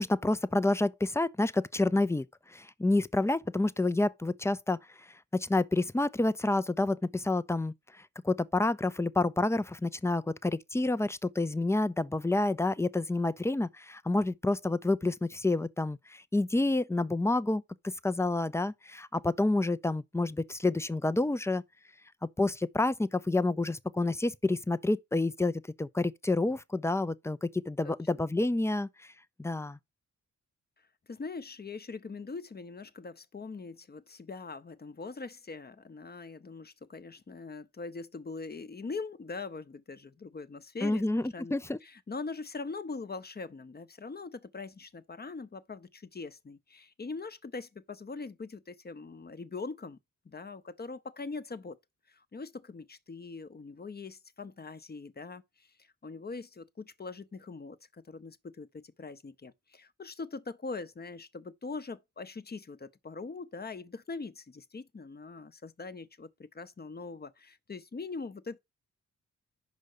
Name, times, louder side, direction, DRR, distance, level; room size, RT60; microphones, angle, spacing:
voice 1, 0.0-4.8 5.3-7.7 8.2-17.6 18.0-21.6 22.4-25.5 25.8-28.9 29.4-29.8 40.8-41.8, left 2 dB, 10° left, 0.5 m, -28 dB
voice 2, 31.1-41.0 41.3-50.0 50.2-51.8 52.1-68.6, left 4 dB, 30° left, 0.8 m, -42 dB
5.5 x 5.1 x 6.6 m
cardioid pair, 70°, 34 cm